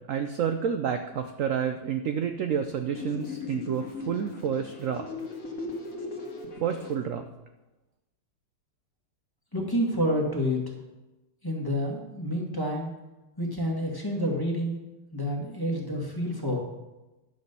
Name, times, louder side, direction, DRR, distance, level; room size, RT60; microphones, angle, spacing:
voice 1, 0.1-5.1 6.6-7.2, right 8 dB, 70° right, 7 dB, 0.7 m, -29 dB
sound 1, 2.9-6.9, left 4 dB, 50° left, 1.9 m, -38 dB
voice 2, 9.5-10.6 11.4-12.9 13.4-14.8 15.1-16.6, equal, 10° left, -1 dB, 1.8 m, -28 dB
10.0 x 6.4 x 6.8 m, 1.1 s
omnidirectional pair, 2.1 m